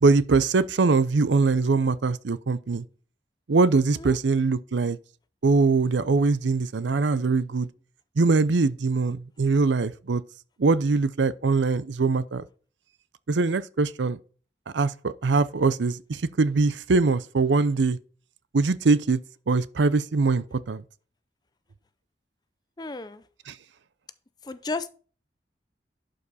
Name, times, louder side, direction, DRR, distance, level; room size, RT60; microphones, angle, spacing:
voice 1, 0.0-2.8 3.5-5.0 5.4-7.7 8.2-10.2 10.6-12.5 13.3-14.2 14.7-18.0 18.5-19.2 19.5-20.8 23.5-23.6, right 3 dB, 85° right, 0.6 m, -22 dB
voice 2, 22.8-23.2 24.4-24.9, left 3 dB, 25° left, 0.5 m, -33 dB
11.5 x 5.2 x 4.1 m
head